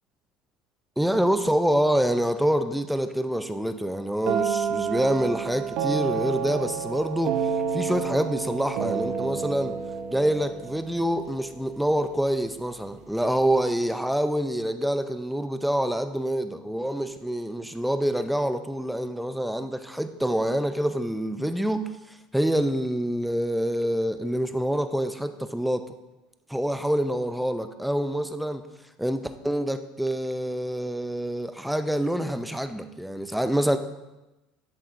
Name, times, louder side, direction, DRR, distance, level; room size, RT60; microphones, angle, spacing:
voice 1, 1.0-9.8 10.1-25.9 26.5-28.7 29.0-33.8, right 1 dB, ahead, 0.6 m, -26 dB
sound 1, 4.3-12.0, right 7 dB, 65° right, 0.7 m, -30 dB
11.0 x 7.4 x 2.6 m
supercardioid pair, 105°, 0 cm